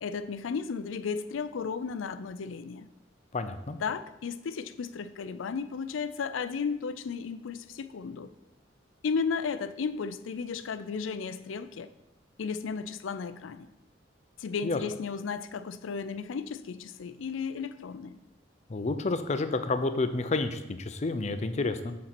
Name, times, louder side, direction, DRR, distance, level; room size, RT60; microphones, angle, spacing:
voice 1, 0.0-2.9 3.8-8.3 9.0-11.9 12.4-13.7 14.4-18.2, left 5 dB, 90° left, 12 dB, 0.4 m, -34 dB
voice 2, 3.3-3.8 14.6-14.8 18.7-22.0, left 3 dB, 35° left, 9 dB, 0.5 m, -30 dB
6.7 x 4.3 x 5.9 m, 0.91 s
head